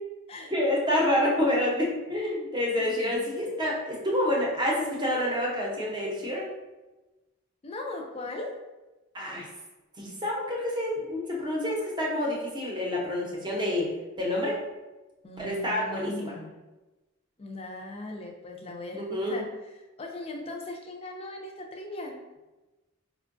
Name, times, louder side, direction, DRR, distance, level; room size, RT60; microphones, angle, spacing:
voice 1, 0.5-6.5 9.1-9.5 10.0-13.9 14.2-14.6 15.4-16.3 18.9-19.4, left 1 dB, 20° right, -3 dB, 0.7 m, -28 dB
voice 2, 2.9-3.3 7.6-8.5 15.2-16.5 17.4-19.5 19.8-22.2, left 2 dB, 30° left, 1 dB, 0.4 m, -39 dB
4.3 x 2.2 x 2.5 m, 1.1 s
head